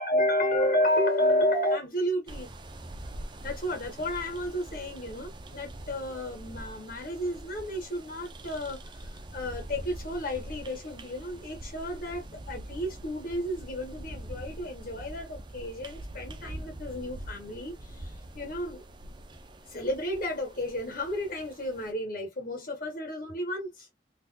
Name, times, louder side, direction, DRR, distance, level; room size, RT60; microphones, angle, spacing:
voice 1, 0.0-2.5 3.4-18.8 19.7-23.9, left 1 dB, 55° left, 1.3 m, -31 dB
sound 1, 2.3-21.9, right 1 dB, 25° right, 0.5 m, -44 dB
3.9 x 2.8 x 2.2 m
head